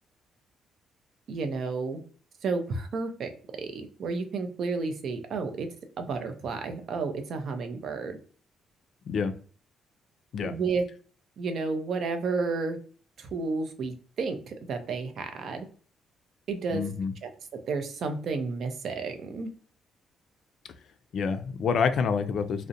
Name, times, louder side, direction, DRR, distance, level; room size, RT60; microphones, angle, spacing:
voice 1, 1.3-2.0 2.4-3.3 3.6-5.7 6.0-8.2 10.4-10.8 11.4-12.8 13.2-15.7 16.5-16.9 17.2-17.3 17.7-19.5, right 4 dB, 65° right, 7 dB, 0.5 m, -31 dB
voice 2, 16.7-17.1 21.1-22.7, left 6 dB, 65° left, 10 dB, 0.3 m, -27 dB
2.5 x 2.0 x 2.6 m, 0.43 s
cardioid pair, 90°, 0 cm